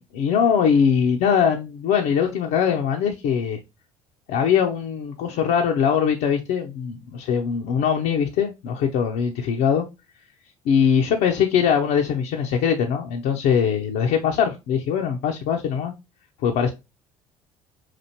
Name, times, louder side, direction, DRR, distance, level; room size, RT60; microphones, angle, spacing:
voice 1, 0.1-3.6 4.3-9.8 10.7-15.9 16.4-16.7, left 7 dB, 65° left, 0.7 m, -21 dB
5.9 x 2.5 x 2.8 m
hypercardioid pair, 60°, 17 cm